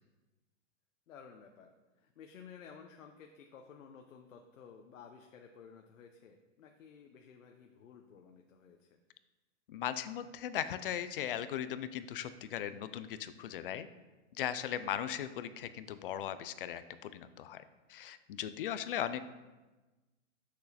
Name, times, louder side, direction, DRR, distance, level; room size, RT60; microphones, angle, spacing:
voice 1, 1.1-8.9 18.7-19.0, left 6 dB, 90° left, 3 dB, 0.9 m, -55 dB
voice 2, 9.7-13.9 14.4-17.6 17.9-19.2, left 10 dB, 45° left, 13 dB, 0.5 m, -38 dB
8.2 x 6.5 x 4.1 m, 1.2 s
supercardioid pair, 165°, 38 cm